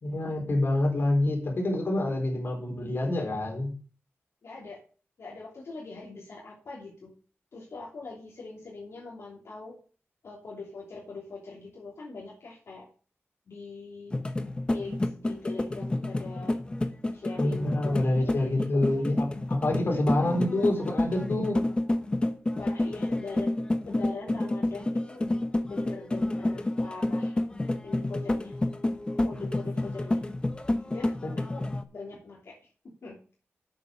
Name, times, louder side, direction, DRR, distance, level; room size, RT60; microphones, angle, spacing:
voice 1, 0.0-3.7 17.4-21.6 31.2-31.3, left 1 dB, 55° left, 1 dB, 4.0 m, -27 dB
voice 2, 4.4-4.8 5.2-7.1 7.5-9.8 10.2-12.9 13.5-14.2 14.7-16.6 17.1-19.2 19.9-20.6 22.6-23.6 23.8-25.2 25.6-27.4 27.8-28.5 29.2-30.2 30.9-32.6 33.0-33.2, left 3 dB, 75° left, -5 dB, 3.1 m, -42 dB
sound 1, 14.1-31.8, left 1 dB, 20° left, 0.8 m, -29 dB
8.4 x 7.1 x 6.7 m, 0.40 s
wide cardioid pair, 130°, 5 cm